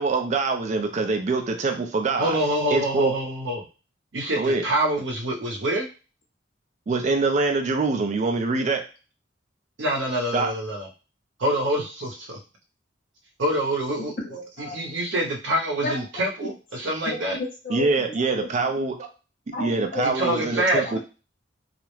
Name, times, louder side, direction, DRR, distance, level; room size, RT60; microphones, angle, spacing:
voice 1, 0.0-2.4 2.7-3.1 4.4-4.6 6.9-8.8 10.3-10.5 17.7-19.0 19.6-21.0, right 3 dB, 40° right, 5 dB, 0.4 m, -24 dB
voice 2, 2.2-3.6 4.1-5.9 9.8-10.9 11.4-12.4 13.4-14.1 14.6-17.4 20.0-21.0, right 1 dB, 80° right, 0 dB, 0.7 m, -26 dB
voice 3, 14.0-14.8 15.8-16.5 17.1-18.5 19.5-20.1 20.8-21.0, left 2 dB, 50° left, -1 dB, 0.8 m, -33 dB
2.4 x 2.0 x 3.1 m, 0.33 s
head